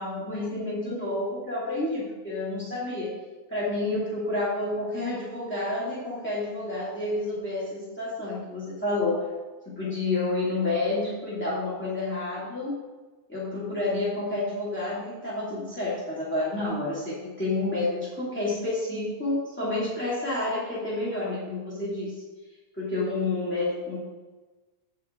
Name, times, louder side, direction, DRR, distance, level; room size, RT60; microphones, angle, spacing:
voice 1, 0.0-3.2 3.5-9.3 9.6-12.7 13.3-22.1 22.8-24.0, left 2 dB, 5° left, -8 dB, 1.3 m, -29 dB
16.5 x 5.6 x 3.7 m, 1.2 s
omnidirectional pair, 4.1 m